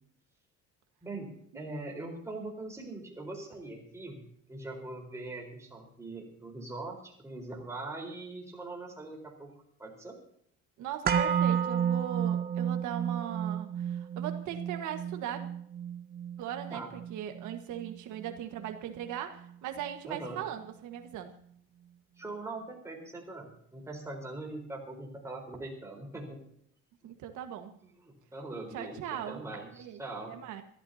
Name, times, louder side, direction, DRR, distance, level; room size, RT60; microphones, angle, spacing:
voice 1, 1.0-4.2 4.5-9.5 9.8-10.2 16.7-16.9 20.0-20.4 22.2-26.4 28.0-29.0 29.3-30.4, right 2 dB, 10° right, -1 dB, 4.2 m, -42 dB
voice 2, 10.8-15.5 16.4-21.3 27.0-27.8 28.7-29.4 29.8-30.0 30.3-30.6, right 10 dB, 85° right, 6 dB, 1.6 m, -39 dB
sound 1, 11.1-19.1 19.4-19.5, right 8 dB, 30° right, 1.2 m, -32 dB
25.5 x 13.0 x 2.8 m, 0.66 s
cardioid pair, 175°, 29 cm